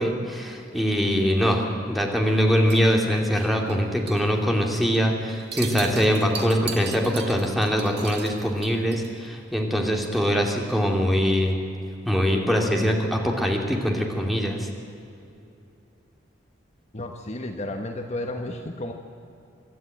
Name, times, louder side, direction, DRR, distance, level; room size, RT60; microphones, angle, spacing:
voice 1, 0.0-1.6 1.9-11.6 12.1-14.7, equal, ahead, 0 dB, 2.7 m, -23 dB
sound 1, 2.7-3.8 4.1-4.3 4.6-5.0 5.3-9.2, right 7 dB, 60° right, 1.6 m, -38 dB
voice 2, 16.9-18.9, left 1 dB, 35° left, 4 dB, 1.3 m, -32 dB
25.0 x 12.5 x 9.2 m, 2.7 s
head